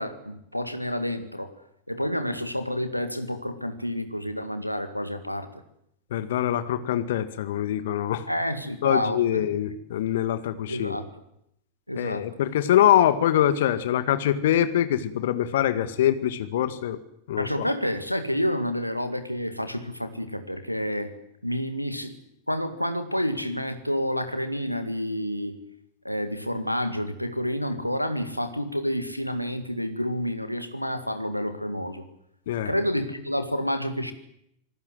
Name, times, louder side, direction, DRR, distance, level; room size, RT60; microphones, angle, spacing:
voice 1, 0.0-1.5 1.9-5.5 8.3-9.4 10.7-11.1 11.9-12.3 17.4-21.1 21.4-22.2 22.5-25.6 26.0-32.0 32.6-34.1, equal, 90° left, 9 dB, 2.0 m, -29 dB
voice 2, 6.1-8.3 8.8-11.0 11.9-17.0 17.3-17.7 32.5-32.7, left 11 dB, 55° left, 12 dB, 2.0 m, -24 dB
27.5 x 19.0 x 8.0 m, 0.77 s
figure-of-eight pair, 90°, 0 cm